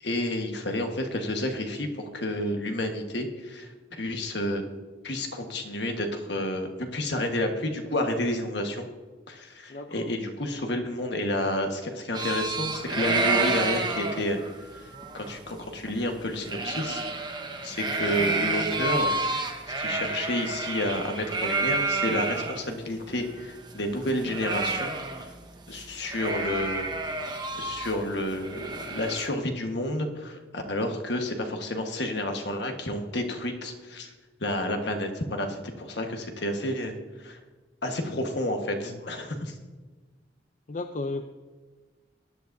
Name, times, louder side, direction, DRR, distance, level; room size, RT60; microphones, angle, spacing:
voice 1, 0.0-4.6 5.0-8.9 9.3-14.4 14.7-14.9 15.1-17.0 17.6-19.1 19.7-24.9 25.7-26.9 27.5-34.1 34.4-37.0 37.2-37.4 37.8-39.5, left 1 dB, 65° left, 4 dB, 1.4 m, -30 dB
voice 2, 9.7-10.1 38.8-39.1 40.7-41.2, left 2 dB, 40° left, 7 dB, 0.4 m, -35 dB
sound 1, 12.1-22.6 22.9-23.0 23.3-25.4 25.7-25.8 26.1-29.3, right 3 dB, 25° right, 1.0 m, -30 dB
18.5 x 10.5 x 2.6 m, 1.3 s
head